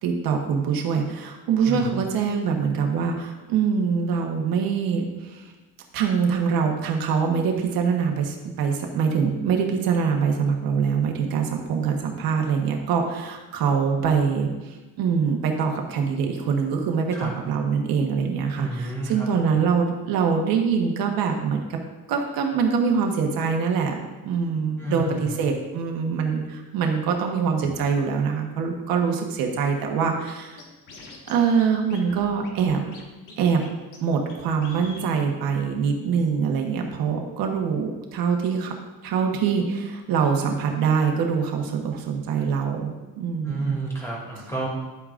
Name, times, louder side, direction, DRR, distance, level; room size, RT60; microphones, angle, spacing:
voice 1, 0.0-5.5 5.9-21.8 22.1-30.6 31.3-32.8 33.4-33.7 34.0-38.7 39.0-42.9 43.2-43.8, right 6 dB, 75° right, 2 dB, 1.2 m, -24 dB
voice 2, 18.5-19.6 24.8-25.4 43.4-44.7, right 2 dB, 10° left, -4 dB, 2.6 m, -31 dB
Scratching (performance technique), 30.3-30.4 30.6-31.3 31.6-31.7 31.9-33.0 33.3-33.7 33.9-34.0 34.3-34.4 34.6-35.1, left 3 dB, 60° left, 1.7 m, -43 dB
10.5 x 8.4 x 2.5 m, 1.1 s
cardioid pair, 165°, 35 cm